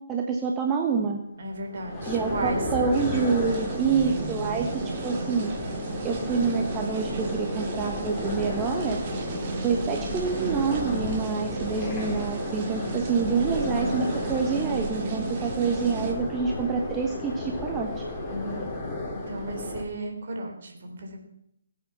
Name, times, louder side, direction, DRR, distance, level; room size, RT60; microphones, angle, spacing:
voice 1, 0.1-1.2 2.1-5.5 6.0-9.0 9.6-17.9, right 5 dB, 15° right, 1 dB, 1.3 m, -27 dB
voice 2, 1.4-2.8 18.3-18.7 19.1-21.2, right 2 dB, 50° right, 3 dB, 3.8 m, -34 dB
sound 1, 1.6-19.8, left 2 dB, 15° left, 3.7 m, -33 dB
sound 2, 2.9-16.1, right 4 dB, 35° right, 2.3 m, -34 dB
20.5 x 8.5 x 5.9 m, 0.78 s
figure-of-eight pair, 140°, 0 cm